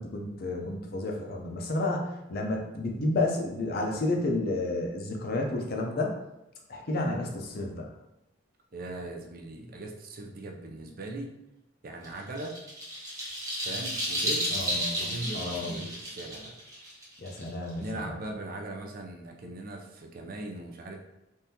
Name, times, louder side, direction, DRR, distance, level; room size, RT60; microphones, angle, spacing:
voice 1, 0.0-6.1 6.7-7.8 14.5-15.1 15.3-15.8 17.2-18.0, left 2 dB, 50° left, 1 dB, 0.5 m, -31 dB
voice 2, 8.7-11.3 11.8-12.6 13.6-14.6 15.0-16.6 17.8-21.0, right 2 dB, 45° right, 2 dB, 0.5 m, -39 dB
sound 1, 12.0-17.8, equal, 15° right, 0.9 m, -32 dB
3.6 x 2.6 x 2.8 m, 0.91 s
head